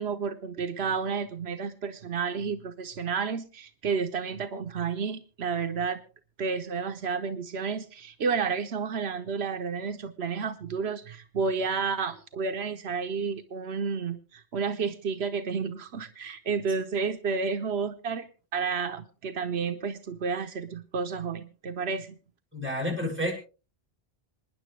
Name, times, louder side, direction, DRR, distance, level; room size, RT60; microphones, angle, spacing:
voice 1, 0.0-6.0 6.4-18.3 18.5-22.1, right 5 dB, 85° right, 8 dB, 1.2 m, -31 dB
voice 2, 22.5-23.3, left 1 dB, 10° right, -2 dB, 6.4 m, -29 dB
27.0 x 10.0 x 3.3 m, 0.35 s
omnidirectional pair, 1.1 m